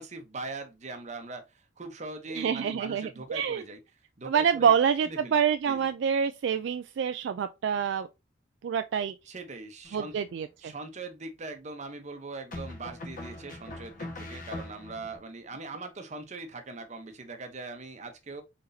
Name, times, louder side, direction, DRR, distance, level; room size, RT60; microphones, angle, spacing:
voice 1, 0.0-3.8 4.2-4.7 5.0-5.9 9.3-10.1 10.6-18.4, right 3 dB, 40° right, 0.8 m, -41 dB
voice 2, 2.3-3.6 4.3-8.1 8.6-9.2 9.9-10.7, right 7 dB, 65° right, 0.3 m, -27 dB
sound 1, 9.8-10.4 12.5-15.2, left 1 dB, 45° left, 1.3 m, -41 dB
4.3 x 4.0 x 2.6 m
head